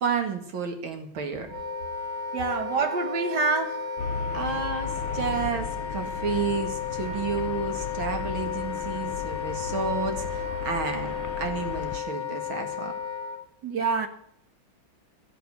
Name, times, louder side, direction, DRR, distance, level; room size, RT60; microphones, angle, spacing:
voice 1, 0.0-1.5 4.3-12.9, right 5 dB, 75° right, 2.7 m, -31 dB
Wind instrument woodwind instrument, 1.4-13.4, left 6 dB, 55° left, 3.1 m, -33 dB
voice 2, 2.3-3.9 13.6-14.1, right 4 dB, 55° right, 1.8 m, -26 dB
Traffic noise roadway noise, 4.0-12.0, left 6 dB, 85° left, 1.7 m, -36 dB
16.5 x 5.9 x 9.6 m
omnidirectional pair, 2.3 m